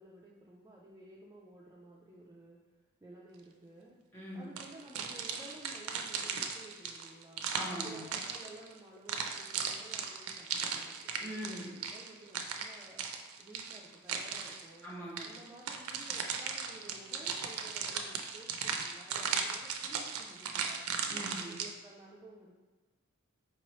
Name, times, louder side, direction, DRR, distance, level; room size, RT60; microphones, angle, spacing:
voice 1, 0.0-2.6 3.0-4.0 4.3-7.5 7.8-13.1 13.4-14.9 15.2-20.9 21.4-22.5, right 2 dB, 15° right, -5 dB, 0.4 m, -54 dB
voice 2, 4.1-4.5 7.5-8.1 11.2-11.7 14.8-15.3 21.1-21.6, equal, 10° left, -6 dB, 1.1 m, -42 dB
sound 1, 4.6-8.7 9.1-14.7 15.2-21.7, right 6 dB, 80° right, 0.4 m, -37 dB
4.5 x 2.9 x 3.0 m, 1.3 s
head